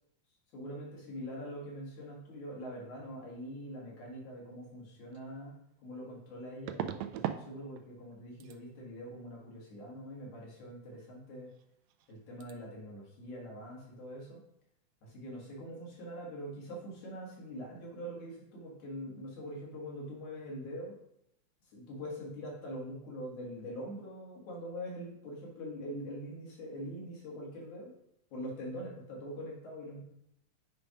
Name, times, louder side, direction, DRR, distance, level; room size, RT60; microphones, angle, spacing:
voice 1, 0.5-5.5 5.8-11.5 12.1-14.4 15.0-20.9 21.7-27.9 28.3-30.0, equal, 75° left, -3 dB, 3.4 m, -43 dB
sound 1, 5.1-5.2 6.7-7.5 7.7-8.1 8.4-8.6 11.5-11.6 11.9-12.1 12.4-12.5, right 11 dB, 85° right, 1.5 m, -38 dB
8.1 x 3.4 x 5.1 m, 0.75 s
omnidirectional pair, 3.5 m